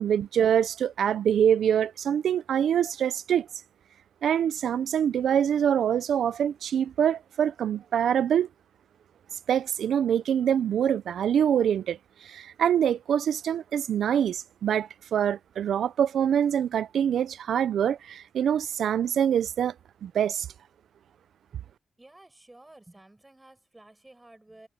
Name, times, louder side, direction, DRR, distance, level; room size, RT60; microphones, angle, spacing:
voice 1, 0.0-3.5 4.2-8.5 9.5-19.7 20.0-20.5, right 9 dB, 90° right, 0.5 m, -25 dB
voice 2, 22.0-24.7, right 2 dB, 15° right, 7.7 m, -53 dB
wide cardioid pair, 120°, 0 cm